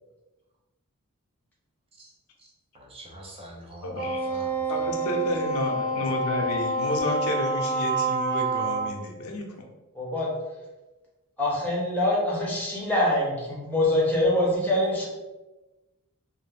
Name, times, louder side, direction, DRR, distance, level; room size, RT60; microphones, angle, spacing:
voice 1, 2.4-4.9, right 1 dB, 25° right, -1 dB, 0.4 m, -45 dB
voice 2, 3.8-4.2 4.7-9.5, left 1 dB, 75° left, 2 dB, 0.5 m, -31 dB
Wind instrument woodwind instrument, 3.9-9.0, right 2 dB, 50° right, 0.9 m, -27 dB
voice 3, 9.9-10.3 11.4-15.1, left 1 dB, 5° left, -6 dB, 0.7 m, -24 dB
2.3 x 2.0 x 3.2 m, 1.1 s
head